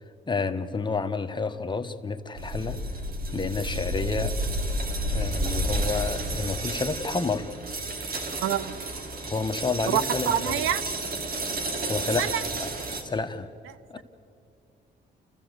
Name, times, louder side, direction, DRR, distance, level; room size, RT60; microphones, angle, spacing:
voice 1, 0.3-2.8 3.3-4.4 5.1-7.5 9.2-10.6 11.9-12.3 12.6-12.7 13.0-13.5 13.9-14.0, left 4 dB, 25° left, 1.2 m, -29 dB
sound 1, 2.4-13.0, right 1 dB, 50° right, 2.7 m, -31 dB
voice 2, 8.4-8.8 9.9-10.8 12.2-12.4, right 11 dB, 85° right, 0.8 m, -26 dB
29.5 x 15.0 x 8.1 m
cardioid pair, 90°, 20 cm